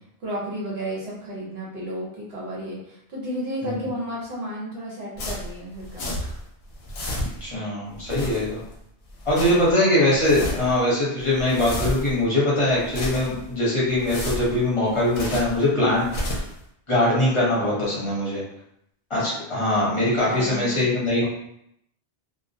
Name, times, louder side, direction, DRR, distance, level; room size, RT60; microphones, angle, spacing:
voice 1, 0.2-6.4 9.5-9.6 15.8-16.0 20.2-21.0, equal, 65° right, -4 dB, 1.0 m, -32 dB
sound 1, 5.2-6.5 6.7-7.5 7.9-8.7 9.1-9.7 10.1-10.8 11.2-12.2 12.7-13.5 13.9-15.6 15.9-16.6, left 1 dB, 70° left, 0.8 m, -32 dB
voice 2, 7.1-8.6 9.3-16.1 16.9-18.4 19.1-21.2, left 1 dB, 30° left, -7 dB, 0.9 m, -22 dB
2.3 x 2.1 x 2.6 m, 0.75 s
omnidirectional pair, 1.2 m